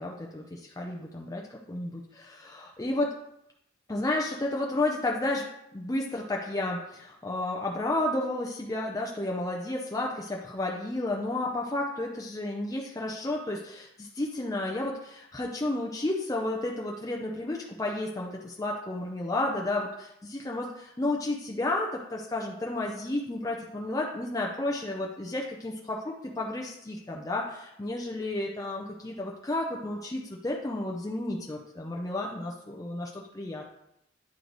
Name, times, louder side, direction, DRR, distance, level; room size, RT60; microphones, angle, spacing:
voice 1, 0.0-3.1 3.9-5.5 5.7-33.7, left 2 dB, 20° left, -1 dB, 0.5 m, -32 dB
9.4 x 3.1 x 3.9 m, 0.79 s
head